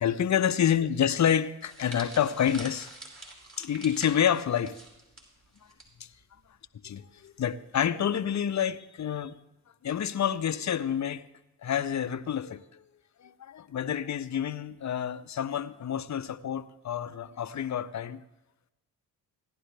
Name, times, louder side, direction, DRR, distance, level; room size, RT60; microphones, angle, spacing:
voice 1, 0.0-2.9 3.6-4.8 6.0-6.1 6.8-9.4 9.8-11.2 11.6-12.8 13.2-18.2, left 9 dB, 40° left, 0.8 m, -28 dB
sound 1, 1.6-5.9 6.1-6.4 7.3-7.5, right 2 dB, 25° right, 4.9 m, -46 dB
17.0 x 11.0 x 3.4 m
hypercardioid pair, 50°, 46 cm